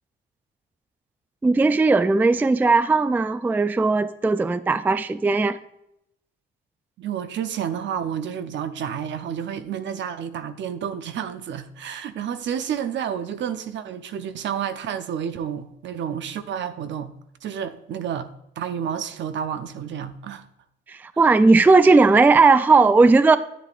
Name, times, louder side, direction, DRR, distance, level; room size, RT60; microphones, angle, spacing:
voice 1, 1.4-5.6 20.9-23.4, right 3 dB, 10° right, 0.3 m, -17 dB
voice 2, 7.0-17.1 17.4-18.3 18.6-20.5, right 8 dB, 70° right, 0.7 m, -30 dB
10.0 x 8.3 x 2.5 m
cardioid pair, 90°, 20 cm